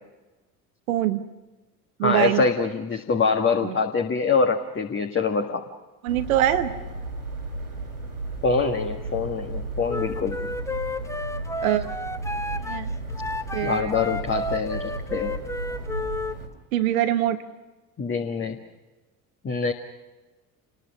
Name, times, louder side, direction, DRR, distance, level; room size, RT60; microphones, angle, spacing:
voice 1, 0.9-1.2 2.0-2.4 3.6-3.7 6.0-6.7 11.6-11.9 12.6-12.9 13.5-13.9 16.7-17.4, right 13 dB, 65° right, 10 dB, 1.2 m, -23 dB
voice 2, 2.0-5.6 8.4-10.4 13.6-14.8 15.1-15.4 18.0-18.6 19.4-19.7, left 4 dB, 25° left, 4 dB, 1.8 m, -24 dB
sound 1, 6.1-16.5, right 2 dB, 85° right, 3.7 m, -34 dB
Wind instrument woodwind instrument, 9.9-16.4, left 2 dB, 5° left, 0.9 m, -32 dB
28.0 x 21.0 x 6.1 m, 1.2 s
figure-of-eight pair, 55°, 44 cm